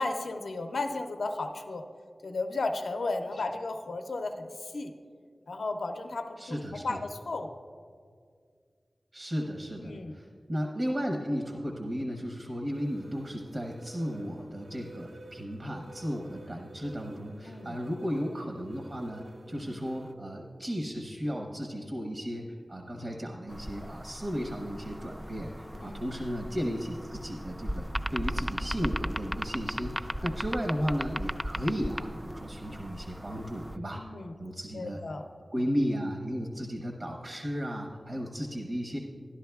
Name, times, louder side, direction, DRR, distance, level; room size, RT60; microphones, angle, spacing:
voice 1, 0.0-1.8 2.2-4.9 5.5-7.5 9.8-10.2 17.4-17.8 19.5-19.8 25.8-26.0 30.2-30.3 33.9-34.3 34.7-35.3, left 3 dB, 85° left, 6 dB, 0.5 m, -34 dB
voice 2, 6.4-7.0 9.1-22.4 22.7-34.0 34.4-35.0 35.5-39.0, equal, 55° right, 1 dB, 0.9 m, -34 dB
sound 1, 12.7-20.1, right 2 dB, 85° right, 0.5 m, -51 dB
sound 2, 23.5-33.8, equal, 15° right, 0.3 m, -37 dB
13.0 x 11.0 x 2.3 m, 2.1 s
cardioid pair, 45°, 0 cm